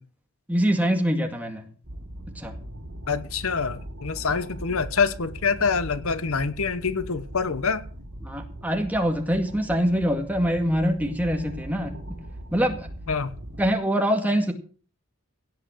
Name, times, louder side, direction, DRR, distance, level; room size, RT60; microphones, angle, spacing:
voice 1, 0.5-1.7 2.3-2.6 4.7-4.8 8.2-12.2 12.5-12.9 13.6-14.5, equal, 5° right, 2.0 m, -24 dB
sound 1, 1.8-13.7, right 1 dB, 60° right, 3.4 m, -40 dB
voice 2, 3.1-7.8 13.1-13.3, left 5 dB, 70° left, 0.9 m, -26 dB
17.0 x 5.9 x 7.7 m
head